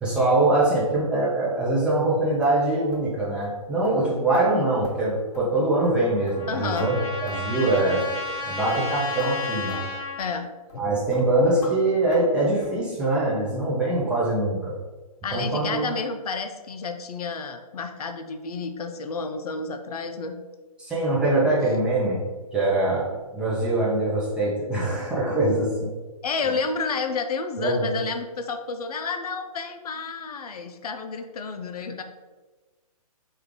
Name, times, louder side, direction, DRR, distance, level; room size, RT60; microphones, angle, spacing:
voice 1, 0.0-8.1 8.4-9.8 10.8-14.8 15.3-15.9 20.8-22.2 22.5-25.9 27.6-27.9, right 2 dB, 5° right, -7 dB, 0.4 m, -23 dB
sound 1, 2.4-2.6 2.9-3.1 3.4-3.5 3.8-4.0 4.3-4.5 4.8-5.0 5.3-5.6 5.8-6.0 6.3-6.9 7.3-7.5 7.8-7.9 8.3-8.4 8.7-8.9 9.2-9.3 9.7-9.8 10.2-10.3 10.7-10.8 11.1-11.3 11.6-11.8 12.1-12.3 12.6-12.8 13.1-13.3 13.6-13.7 14.1-14.2 14.6-14.7, left 2 dB, 45° left, 1.4 m, -42 dB
Trumpet, 5.8-10.3, left 4 dB, 20° left, 0.8 m, -33 dB
voice 2, 6.5-6.9 10.2-10.9 11.2-11.3 15.2-20.4 26.2-32.0, left 4 dB, 75° left, 7 dB, 0.4 m, -30 dB
3.2 x 2.4 x 3.5 m, 1.3 s
hypercardioid pair, 145°, 20 cm